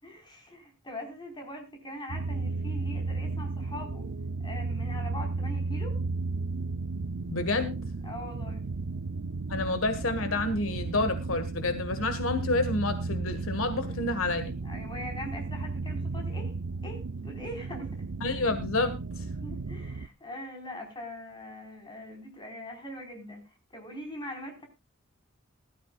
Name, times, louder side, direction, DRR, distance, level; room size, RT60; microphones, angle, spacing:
voice 1, 0.0-4.1 4.4-6.0 8.0-8.7 14.0-14.3 14.6-16.5 16.8-18.1 19.4-23.4 23.7-24.6, left 1 dB, 20° left, 3 dB, 4.6 m, -42 dB
sound 1, 2.1-20.1, right 3 dB, 75° right, 0.6 m, -34 dB
voice 2, 7.3-7.8 9.5-14.5 18.2-19.3, left 2 dB, 75° left, 10 dB, 1.6 m, -29 dB
19.5 x 13.5 x 2.4 m, 0.28 s
head